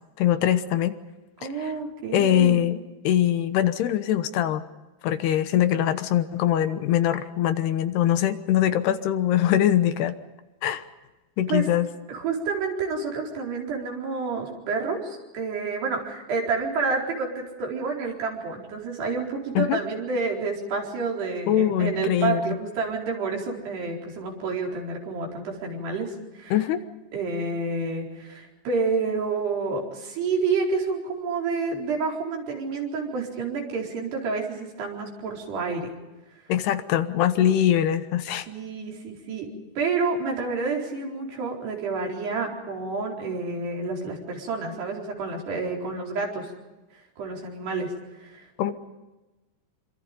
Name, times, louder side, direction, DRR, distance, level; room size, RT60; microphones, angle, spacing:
voice 1, 0.2-0.9 1.6-1.7 2.1-2.8 3.0-4.6 5.0-10.1 10.6-10.8 11.4-11.9 19.6-19.8 21.5-22.4 26.5-26.8 36.5-38.5 48.6-48.7, left 11 dB, 75° left, 10 dB, 3.1 m, -22 dB
voice 2, 1.4-2.6 11.5-11.6 12.1-26.5 27.1-35.9 38.5-39.5 39.8-46.5 47.2-47.9 48.2-48.7, right 4 dB, 75° right, 0 dB, 6.4 m, -29 dB
27.0 x 25.5 x 5.3 m, 1.1 s
omnidirectional pair, 4.8 m